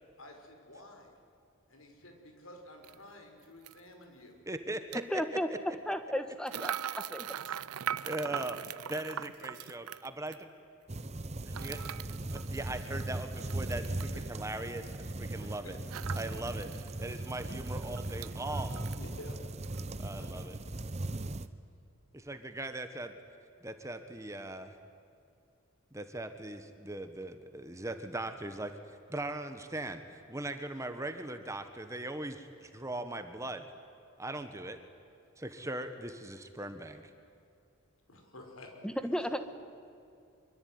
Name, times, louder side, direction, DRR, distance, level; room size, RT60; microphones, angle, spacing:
voice 1, 0.2-1.2 1.7-4.4 7.6-8.4 14.1-14.2 15.4-15.7 19.0-19.4 20.1-20.3 38.1-38.7 39.2-39.3, left 1 dB, 75° left, 3 dB, 5.8 m, -51 dB
sound 1, 2.8-2.9 3.6-3.8 4.7-5.0 6.5-10.4 11.5-14.1 15.9-16.9 17.3-17.4 17.7-18.3 18.7-19.3 19.6-19.8, right 9 dB, 90° right, 0.6 m, -40 dB
voice 2, 4.5-5.2 8.0-8.6 8.8-10.4 11.4-11.8 12.3-15.8 16.1-16.7 17.0-18.8 20.0-20.6 22.1-23.1 23.6-24.8 25.9-33.7 34.2-34.8 35.4-37.0, right 1 dB, 15° right, 8 dB, 1.4 m, -39 dB
voice 3, 5.1-5.5 5.9-6.7 7.1-7.3 38.8-39.5, equal, 5° left, 8 dB, 1.5 m, -33 dB
sound 2, 10.9-21.5, right 2 dB, 30° right, 0.9 m, -38 dB
25.5 x 24.5 x 9.6 m, 2.5 s
head